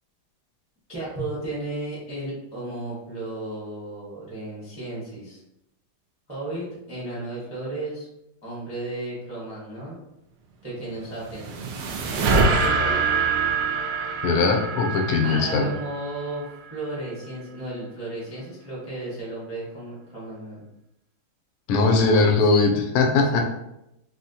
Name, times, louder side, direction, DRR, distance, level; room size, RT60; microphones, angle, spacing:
voice 1, 0.9-5.4 6.3-8.1 8.4-10.0 10.6-11.6 12.4-13.0 15.2-16.4 16.7-20.6 21.8-22.7 23.3-23.4, right 2 dB, 15° right, -7 dB, 0.5 m, -34 dB
sound 1, 11.0-16.4, right 4 dB, 80° right, 1.4 m, -25 dB
voice 2, 14.2-15.7 21.7-23.4, left 3 dB, 85° left, 2 dB, 1.5 m, -20 dB
4.1 x 2.1 x 2.7 m, 0.86 s
omnidirectional pair, 2.4 m